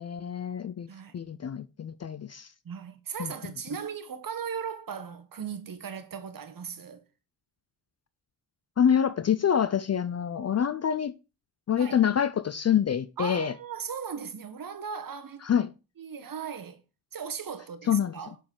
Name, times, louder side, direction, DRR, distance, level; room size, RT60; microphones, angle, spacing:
voice 1, 0.0-0.9 1.1-2.5 3.2-3.3 8.8-11.1 11.7-13.5 15.4-15.7 17.9-18.1, left 8 dB, 35° left, 0.5 m, -26 dB
voice 2, 0.9-1.2 2.6-7.0 11.8-12.0 13.2-15.4 16.0-16.8 17.1-18.4, right 7 dB, 50° right, 1.2 m, -37 dB
7.2 x 4.4 x 3.9 m
supercardioid pair, 55°, 45 cm